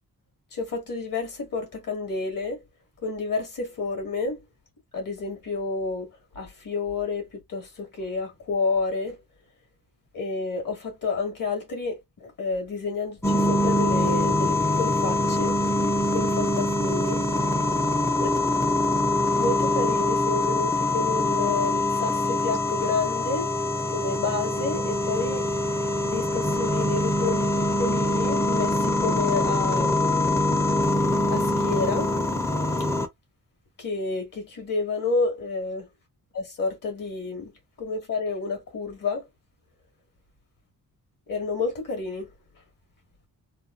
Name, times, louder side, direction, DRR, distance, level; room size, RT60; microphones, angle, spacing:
voice 1, 0.5-2.6 3.0-4.4 4.9-9.2 10.1-17.2 18.2-18.3 19.3-23.5 23.9-25.5 26.1-30.1 31.3-32.1 33.8-35.9 36.3-37.5 37.8-39.3 41.3-42.3, left 3 dB, 65° left, 2.0 m, -30 dB
sound 1, 13.2-33.1, left 1 dB, 10° left, 0.5 m, -24 dB
3.9 x 2.2 x 2.4 m
wide cardioid pair, 130°, 36 cm